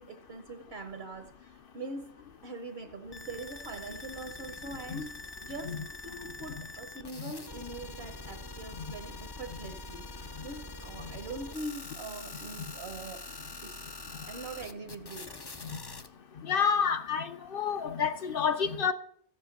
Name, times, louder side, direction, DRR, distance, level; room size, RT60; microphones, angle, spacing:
voice 1, 0.0-2.2 2.4-13.2 13.6-13.9 14.3-15.4, right 2 dB, 65° right, 1.3 m, -43 dB
sound 1, 3.1-16.1, left 3 dB, 25° left, 0.6 m, -44 dB
voice 2, 16.5-18.9, left 6 dB, 55° left, 1.0 m, -29 dB
14.0 x 7.5 x 6.5 m
omnidirectional pair, 1.1 m